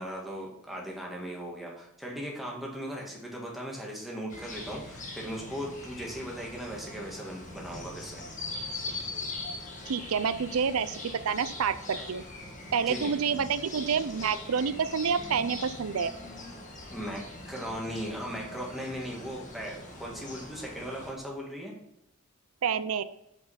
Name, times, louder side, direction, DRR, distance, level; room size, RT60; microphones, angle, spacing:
voice 1, 0.0-8.2 12.9-13.1 16.9-21.7, equal, ahead, -3 dB, 2.1 m, -38 dB
sound 1, 4.3-21.1, left 2 dB, 35° left, 1.5 m, -41 dB
voice 2, 9.9-11.0 11.2-12.2 12.7-16.1 22.6-23.0, right 6 dB, 70° right, 13 dB, 0.5 m, -28 dB
8.4 x 5.6 x 5.6 m, 0.84 s
head